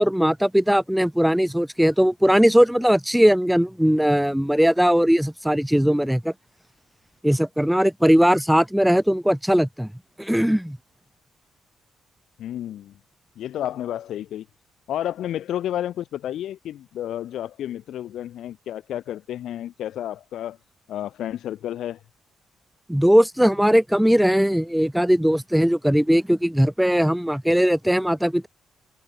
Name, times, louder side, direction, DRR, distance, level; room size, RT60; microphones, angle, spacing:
voice 1, 0.0-6.3 7.2-9.9 10.2-10.8 22.9-28.5, equal, ahead, 0.3 m, -19 dB
voice 2, 12.4-13.0 13.3-14.5 14.9-20.6 20.9-22.0, left 11 dB, 70° left, 1.8 m, -31 dB
cardioid pair, 160°, 0 cm